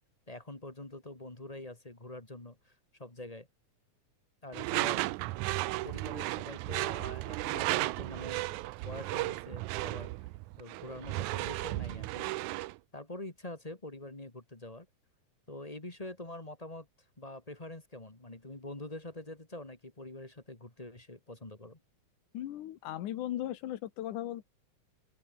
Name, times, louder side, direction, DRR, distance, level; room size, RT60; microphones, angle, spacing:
voice 1, 0.3-3.5 4.4-5.1 5.8-8.6 8.8-10.3 10.6-12.3 12.9-14.9 15.5-16.9 17.2-21.8, left 2 dB, 15° left, 1.8 m, -45 dB
Door / Screech, 4.5-12.8, right 19 dB, 80° right, 2.0 m, -34 dB
voice 2, 22.3-24.4, left 12 dB, 85° left, 2.8 m, -37 dB
open air
omnidirectional pair, 3.5 m